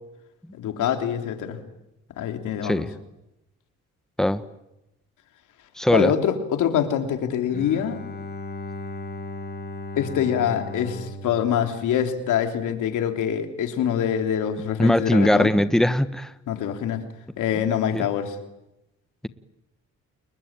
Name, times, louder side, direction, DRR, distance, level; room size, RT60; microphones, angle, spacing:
voice 1, 0.5-1.6 2.2-2.9 5.9-8.0 10.0-15.6 16.5-17.0 17.4-18.4, left 9 dB, 80° left, 6 dB, 3.4 m, -25 dB
voice 2, 5.8-6.1 14.8-16.3 17.9-18.1, left 1 dB, ahead, 12 dB, 1.3 m, -20 dB
Bowed string instrument, 7.5-12.7, left 2 dB, 35° left, 2.3 m, -37 dB
30.0 x 22.0 x 9.0 m, 0.92 s
cardioid pair, 90°, 30 cm